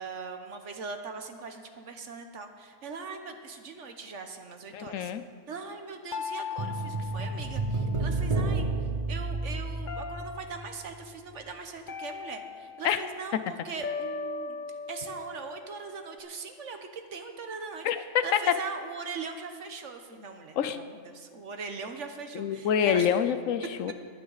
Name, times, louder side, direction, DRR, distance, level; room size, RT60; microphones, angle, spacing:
voice 1, 0.0-5.1 5.5-8.7 9.1-14.6 14.9-17.9 18.2-23.1, right 4 dB, 70° right, 6 dB, 1.3 m, -40 dB
voice 2, 4.7-5.2 12.8-13.1 17.8-18.6 20.6-20.8 22.3-23.9, left 8 dB, 90° left, 11 dB, 1.1 m, -26 dB
sound 1, 6.1-8.5 9.9-10.9 11.9-13.2 13.8-16.2, left 5 dB, 45° left, 0.7 m, -39 dB
sound 2, 6.6-11.0 11.3-11.4, right 3 dB, 30° right, 0.7 m, -31 dB
20.5 x 9.5 x 4.0 m, 2.1 s
omnidirectional pair, 1.3 m